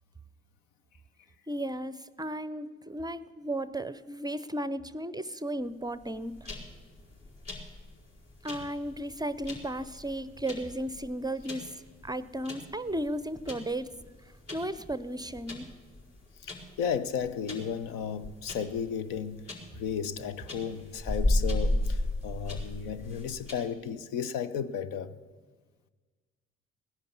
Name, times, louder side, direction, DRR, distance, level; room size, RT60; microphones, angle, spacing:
voice 1, 1.5-6.5 8.4-13.9 14.5-15.7, right 1 dB, 10° right, 0.6 m, -35 dB
sound 1, 5.9-23.5, left 1 dB, 45° left, 4.7 m, -35 dB
voice 2, 16.4-25.1, left 7 dB, 65° left, 0.9 m, -34 dB
18.0 x 10.5 x 7.0 m
hypercardioid pair, 50°, 35 cm